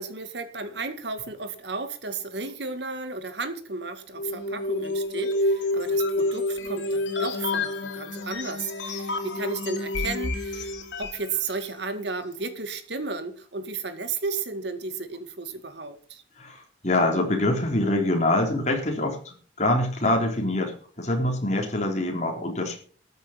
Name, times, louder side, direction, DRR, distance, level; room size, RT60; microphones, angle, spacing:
voice 1, 0.0-16.2, right 4 dB, 65° right, 9 dB, 2.0 m, -34 dB
sound 1, 4.2-11.3, left 2 dB, 85° left, 3.4 m, -28 dB
voice 2, 16.4-22.8, left 1 dB, 40° left, 2 dB, 3.9 m, -25 dB
13.5 x 9.5 x 5.8 m, 0.43 s
head